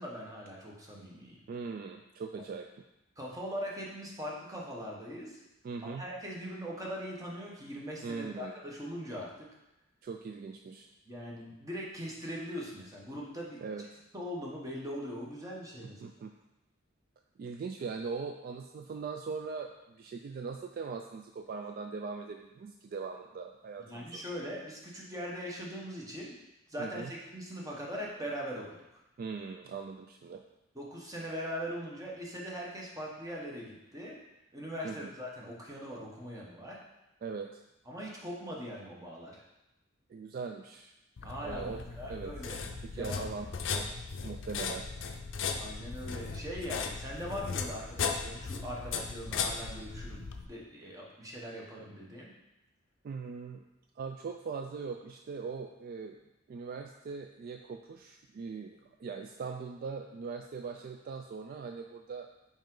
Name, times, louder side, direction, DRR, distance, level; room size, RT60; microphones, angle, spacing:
voice 1, 0.0-1.4 3.2-5.4 5.9-9.5 11.1-13.6 14.1-16.0 23.8-26.4 26.7-28.7 28.9-29.0 30.7-34.2 34.5-36.8 37.9-39.4 41.2-42.6 42.9-43.2 45.6-52.3, equal, 15° right, -3 dB, 1.1 m, -41 dB
voice 2, 1.5-2.7 5.6-6.0 8.0-8.5 10.0-10.9 13.6-13.9 16.0-16.3 17.4-24.2 26.8-27.1 29.2-30.4 34.8-35.1 37.2-37.6 40.1-40.9 41.4-41.8 42.1-42.3 42.8-43.5 43.8-43.9 44.2-44.9 53.0-53.6 54.0-56.2 56.5-62.3, right 5 dB, 45° right, 4 dB, 0.3 m, -40 dB
sound 1, 41.2-50.5, left 5 dB, 65° left, 0.5 m, -37 dB
5.2 x 4.8 x 3.8 m, 0.94 s
head